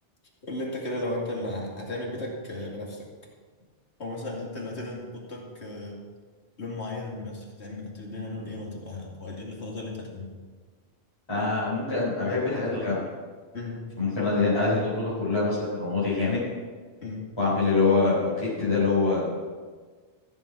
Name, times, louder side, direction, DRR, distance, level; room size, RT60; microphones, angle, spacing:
voice 1, 0.4-3.1 4.0-6.0 6.6-10.3 13.5-13.8 17.0-17.2, left 2 dB, 70° left, -2 dB, 2.6 m, -35 dB
voice 2, 11.3-13.0 14.0-16.4 17.4-19.3, left 3 dB, 25° left, -9 dB, 4.0 m, -24 dB
14.5 x 7.2 x 6.1 m, 1.5 s
omnidirectional pair, 1.2 m